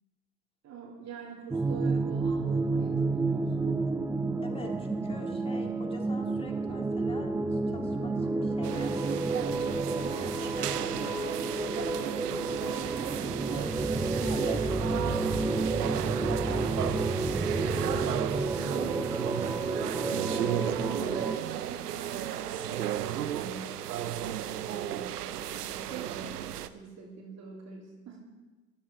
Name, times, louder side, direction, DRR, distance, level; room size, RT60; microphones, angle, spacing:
voice 1, 0.6-3.9 10.0-10.1 19.5-28.2, right 5 dB, 35° right, -2 dB, 3.2 m, -45 dB
sound 1, 1.5-21.4, right 3 dB, 5° right, 0.5 m, -30 dB
voice 2, 4.4-12.6 13.5-18.6, left 1 dB, 10° left, 2 dB, 2.4 m, -46 dB
sound 2, 8.6-26.7, right 11 dB, 85° right, 0.8 m, -34 dB
17.5 x 13.0 x 4.4 m, 1.2 s
hypercardioid pair, 95°, 46 cm